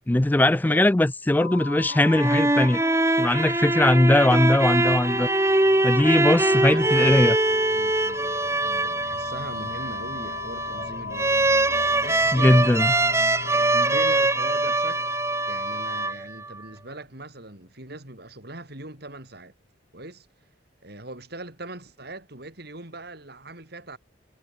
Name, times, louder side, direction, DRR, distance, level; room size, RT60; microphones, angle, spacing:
voice 1, 0.1-2.8 3.2-5.3 5.8-7.4 12.3-12.9, left 1 dB, 10° left, 0.3 m, -20 dB
sound 1, 1.4-16.1, left 5 dB, 75° left, 1.0 m, -36 dB
sound 2, 1.9-16.6, right 2 dB, 15° right, 1.0 m, -23 dB
sound 3, 5.1-17.3, left 1 dB, 45° left, 3.0 m, -43 dB
voice 2, 6.5-11.6 12.0-12.8 13.5-15.1 15.5-19.5 19.9-20.3 20.8-24.0, right 2 dB, 60° right, 5.3 m, -41 dB
head